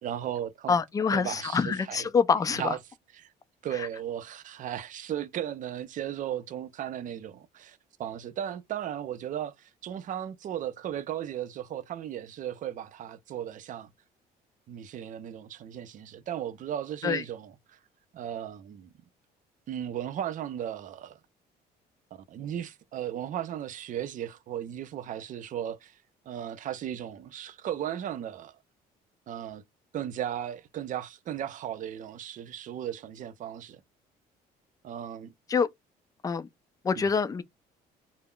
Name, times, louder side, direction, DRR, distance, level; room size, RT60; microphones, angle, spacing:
voice 1, 0.0-0.7 1.1-2.1 2.6-2.8 3.2-3.3 3.6-13.9 14.7-17.8 18.1-18.9 19.7-21.2 22.1-26.0 26.3-28.6 29.3-29.6 29.9-33.8 34.8-35.3 36.9-37.1, right 10 dB, 50° right, 0.5 m, -36 dB
voice 2, 0.7-2.8 3.7-3.9 17.0-17.2 35.5-35.7 36.2-36.5 36.8-37.4, left 5 dB, 20° left, 0.3 m, -26 dB
2.2 x 2.0 x 3.6 m
cardioid pair, 110°, 17 cm